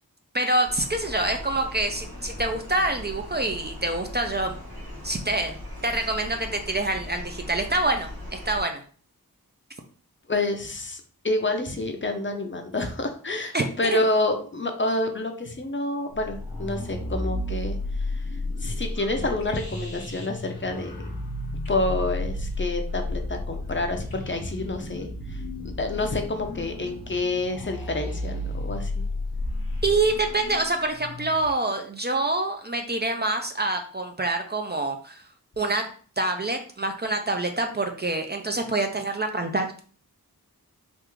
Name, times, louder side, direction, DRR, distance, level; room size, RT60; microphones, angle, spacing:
voice 1, 0.3-4.6 5.0-5.6 5.8-8.8 13.5-14.0 29.8-35.2 35.6-35.8 36.2-39.7, right 2 dB, 30° right, 5 dB, 0.4 m, -26 dB
sound 1, 0.6-8.6, left 1 dB, 85° right, 1.3 m, -39 dB
voice 2, 10.3-17.8 18.6-21.1 21.7-25.4 25.8-29.0, left 2 dB, 35° left, 5 dB, 0.5 m, -28 dB
sound 2, 16.1-31.5, left 2 dB, 70° left, 0.8 m, -32 dB
3.4 x 2.4 x 3.0 m, 0.43 s
wide cardioid pair, 65°, 35 cm